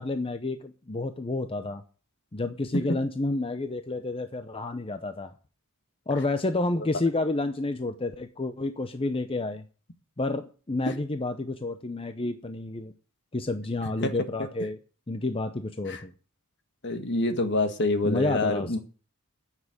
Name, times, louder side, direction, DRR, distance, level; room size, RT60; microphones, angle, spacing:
voice 1, 0.0-1.8 2.3-5.3 6.1-9.6 10.2-12.9 13.3-14.8 15.1-16.1 18.0-18.8, left 2 dB, 25° left, 9 dB, 0.7 m, -30 dB
voice 2, 16.8-18.8, left 2 dB, 55° left, 8 dB, 1.7 m, -26 dB
10.0 x 7.5 x 8.8 m, 0.38 s
head